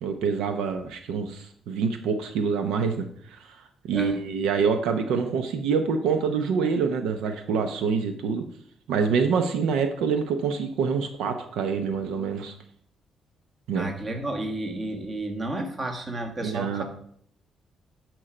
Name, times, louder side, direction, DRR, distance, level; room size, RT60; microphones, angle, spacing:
voice 1, 0.0-3.6 3.8-8.4 8.9-12.5 13.7-13.9 16.4-16.8, right 5 dB, 90° right, 7 dB, 0.7 m, -26 dB
voice 2, 13.7-16.8, right 2 dB, 35° right, 4 dB, 1.6 m, -31 dB
11.0 x 4.6 x 5.0 m, 0.65 s
cardioid pair, 90°, 0 cm